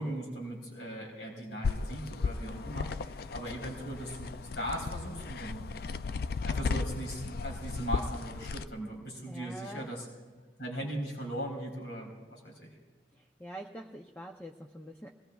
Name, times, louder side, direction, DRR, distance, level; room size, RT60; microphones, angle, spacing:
voice 1, 0.0-6.1 6.4-10.1 10.6-12.7, equal, 75° left, 0 dB, 3.9 m, -39 dB
sound 1, 1.6-8.6, left 4 dB, 55° left, 0.4 m, -35 dB
voice 2, 9.3-9.9 13.1-15.1, right 1 dB, 10° left, 1 dB, 0.6 m, -45 dB
24.0 x 18.5 x 2.3 m, 1.3 s
head